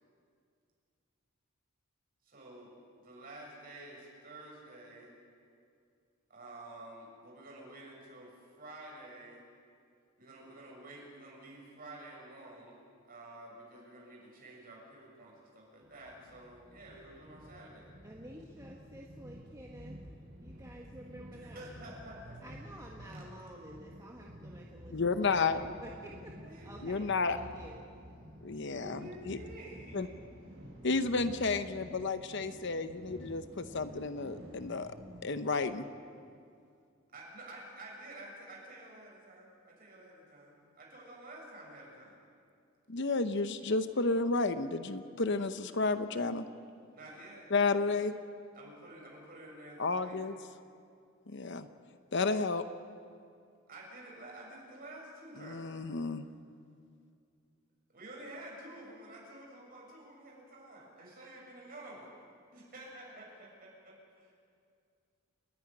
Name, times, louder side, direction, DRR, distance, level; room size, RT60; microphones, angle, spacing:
voice 1, 2.2-2.7 3.0-5.1 6.3-9.4 10.2-17.9 21.3-22.5 23.1-23.2 26.3-26.8 28.7-30.2 37.1-42.2 46.9-47.5 48.5-50.2 53.7-55.9 57.9-62.1 62.5-64.3, right 1 dB, 45° right, -3 dB, 7.1 m, -50 dB
sound 1, 15.8-35.3, equal, 65° right, 7.6 m, -51 dB
voice 2, 18.0-20.0 20.4-21.7 22.4-27.8, equal, 15° right, -2 dB, 1.5 m, -50 dB
voice 3, 24.9-25.6 26.8-27.4 28.4-29.0 29.3-29.4 29.9-30.1 30.8-34.9 35.2-35.9 42.9-46.5 47.5-48.1 49.8-50.4 51.3-51.7 52.1-52.6 55.4-56.2, left 3 dB, 60° left, 10 dB, 0.8 m, -31 dB
29.5 x 10.0 x 9.9 m, 2.3 s
head